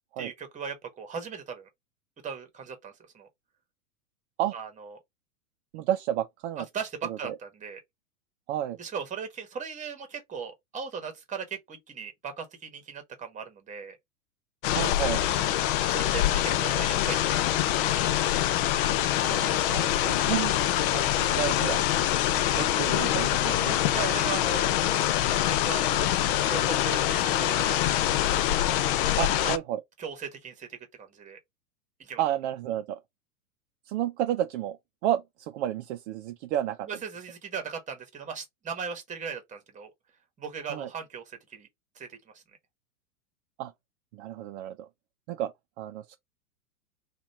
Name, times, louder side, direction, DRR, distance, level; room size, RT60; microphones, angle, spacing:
voice 1, 0.2-1.7 2.2-3.3 4.5-5.0 6.7-7.8 8.8-14.0 15.9-18.5 23.9-24.7 25.3-26.1 26.5-27.8 29.2-29.6 30.0-31.4 32.0-32.2 36.8-39.9 40.4-41.7 41.9-42.2, right 6 dB, 15° right, 1.2 m, -38 dB
voice 2, 5.7-6.7 7.1-7.4 8.5-8.8 14.7-15.3 19.3-20.5 20.9-21.9 22.6-23.8 29.2-29.8 32.2-33.0 33.9-34.8 35.0-36.9 40.7-40.9 43.6-43.7 44.1-44.9 45.3-45.5 45.8-46.2, right 12 dB, 50° right, 0.6 m, -31 dB
sound 1, 14.6-29.6, left 12 dB, 40° left, 0.4 m, -25 dB
3.1 x 2.5 x 4.0 m
hypercardioid pair, 110°, 44 cm